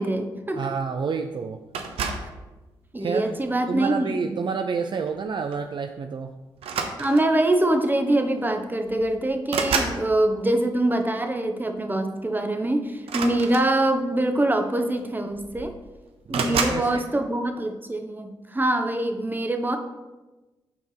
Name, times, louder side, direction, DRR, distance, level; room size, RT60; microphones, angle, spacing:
voice 1, 0.0-0.7 2.9-4.3 7.0-15.7 16.3-19.8, right 1 dB, 20° right, 5 dB, 1.1 m, -24 dB
voice 2, 0.5-1.6 3.0-3.4 3.7-6.3 16.3-17.3, right 5 dB, 55° right, 6 dB, 0.4 m, -29 dB
sound 1, 1.7-2.4 3.2-3.6 5.1-5.2 5.5-5.7 6.6-7.4 8.5-8.6 8.9-10.0 13.0-14.1 15.0-15.1 15.3-15.8 16.3-16.9, right 5 dB, 80° right, 0.7 m, -29 dB
5.7 x 4.5 x 5.8 m, 1.1 s
supercardioid pair, 45°, 10 cm